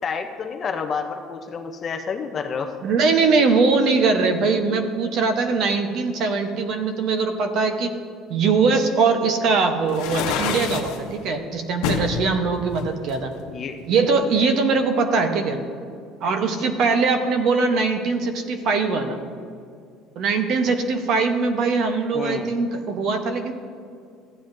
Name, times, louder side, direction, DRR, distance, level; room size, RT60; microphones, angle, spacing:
voice 1, 0.0-2.8 13.4-13.8 22.1-22.5, left 6 dB, 25° left, 5 dB, 0.5 m, -29 dB
voice 2, 2.8-7.9 8.3-13.3 13.9-15.6 16.2-19.2 20.2-23.5, right 4 dB, 45° right, 6 dB, 0.8 m, -21 dB
sound 1, 9.9-11.0 11.8-12.1 12.7-13.8, left 5 dB, 80° left, 1.0 m, -26 dB
14.5 x 9.6 x 2.6 m, 2.3 s
cardioid pair, 180°, 0 cm